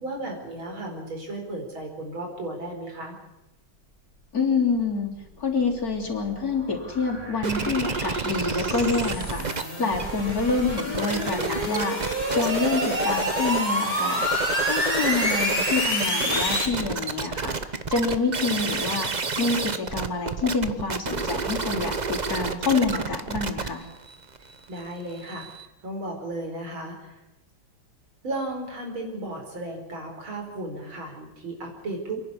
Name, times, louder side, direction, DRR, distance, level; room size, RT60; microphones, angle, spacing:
voice 1, 0.0-3.2 24.7-25.5 25.8-27.2 28.2-32.2, right 2 dB, 85° right, 1 dB, 5.5 m, -34 dB
voice 2, 4.3-14.2 14.6-17.6 17.9-19.1 19.4-23.9, left 4 dB, 45° left, 0 dB, 4.0 m, -27 dB
sound 1, 5.3-16.7, left 1 dB, 20° left, 5.0 m, -29 dB
sound 2, 7.4-9.6 9.9-13.7 14.1-25.7, right 4 dB, 30° right, 0.8 m, -30 dB
29.0 x 11.0 x 9.9 m, 0.94 s
omnidirectional pair, 2.2 m